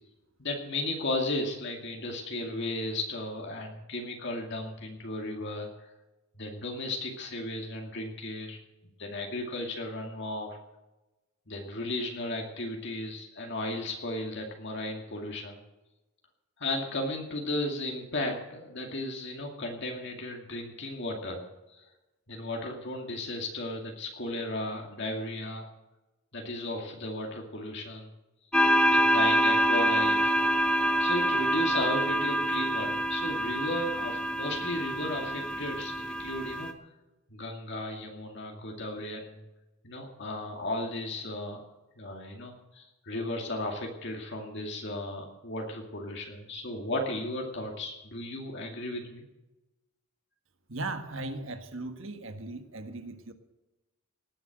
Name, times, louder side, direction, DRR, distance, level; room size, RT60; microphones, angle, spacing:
voice 1, 0.4-5.9 6.3-8.6 9.0-10.6 11.5-15.6 16.6-21.4 21.7-21.9 22.3-25.7 26.3-28.1 28.9-30.4 31.0-36.7 37.3-39.4 39.8-41.6 42.0-49.2, left 1 dB, 55° left, 1 dB, 2.3 m, -35 dB
sound 1, 28.5-36.7, equal, 5° left, 0.8 m, -26 dB
voice 2, 50.7-53.3, right 2 dB, 60° right, 7 dB, 1.6 m, -38 dB
19.0 x 7.9 x 7.9 m, 1.0 s
head